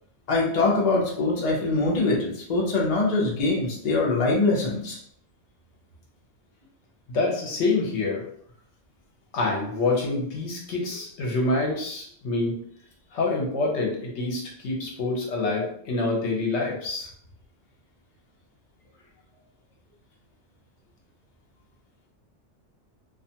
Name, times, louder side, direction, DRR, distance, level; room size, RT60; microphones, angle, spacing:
voice 1, 0.3-5.0, left 3 dB, 45° left, -3 dB, 0.7 m, -23 dB
voice 2, 7.1-8.2 9.3-12.6 13.1-17.1, left 3 dB, 70° left, -1 dB, 1.0 m, -26 dB
2.4 x 2.3 x 2.7 m, 0.63 s
omnidirectional pair, 1.2 m